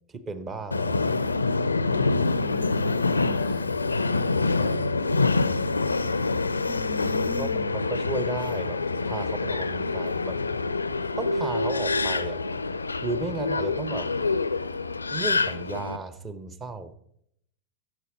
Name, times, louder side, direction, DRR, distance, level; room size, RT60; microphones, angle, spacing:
voice 1, 0.1-1.2 3.1-3.2 3.8-3.9 4.6-5.2 7.3-8.8 9.1-10.4 11.2-12.4 13.0-14.1 15.1-16.9, right 3 dB, 20° right, 12 dB, 0.9 m, -34 dB
Subway metro underground, 0.7-16.0, left 3 dB, 80° left, 0.4 m, -26 dB
voice 2, 1.9-3.7 6.7-7.7, left 1 dB, 15° left, 13 dB, 0.5 m, -41 dB
12.5 x 7.2 x 5.1 m, 0.73 s
figure-of-eight pair, 90°, 0 cm